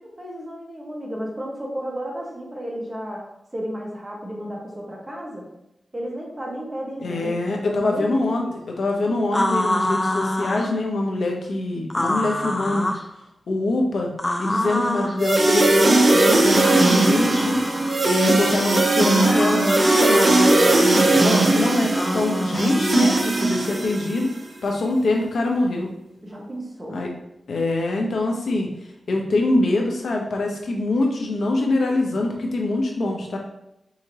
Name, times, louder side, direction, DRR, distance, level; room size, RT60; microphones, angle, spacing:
voice 1, 0.2-5.5 5.9-7.4 7.7-8.5 26.2-27.0, equal, 20° right, -3 dB, 1.4 m, -33 dB
voice 2, 7.0-12.9 13.5-14.1 14.4-17.6 18.0-24.3 24.6-25.9 26.9-27.1 27.5-28.7 29.1-33.4, left 2 dB, 80° left, 1 dB, 0.8 m, -24 dB
sound 1, 9.3-10.7 11.9-13.1 14.2-15.2 16.6-18.0 19.3-20.5 21.9-23.2, left 1 dB, 20° left, 0.4 m, -26 dB
sound 2, 15.2-24.3, right 2 dB, 45° right, 0.6 m, -19 dB
4.8 x 2.9 x 2.8 m, 0.84 s
cardioid pair, 65°, 0 cm